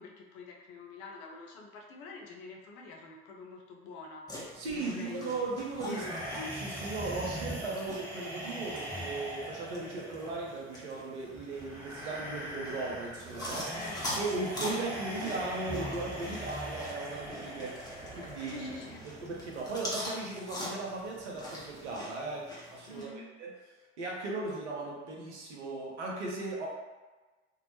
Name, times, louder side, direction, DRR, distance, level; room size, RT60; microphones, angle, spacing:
voice 1, 0.0-4.3 4.6-5.4 5.8-6.2 13.7-14.7 18.5-19.1 22.9-23.3, left 4 dB, 55° left, 0 dB, 0.5 m, -46 dB
sound 1, 4.3-23.1, left 1 dB, 10° left, 0.6 m, -44 dB
voice 2, 4.5-6.1 6.4-13.8 14.2-17.7 18.1-18.7 19.0-23.5 24.0-26.7, right 3 dB, 75° right, -2 dB, 0.6 m, -37 dB
sound 2, 5.8-18.8, right 1 dB, 15° right, 1.0 m, -41 dB
sound 3, 11.6-19.8, right 2 dB, 45° right, 1.1 m, -51 dB
2.1 x 2.0 x 2.9 m, 1.3 s
figure-of-eight pair, 55°, 35 cm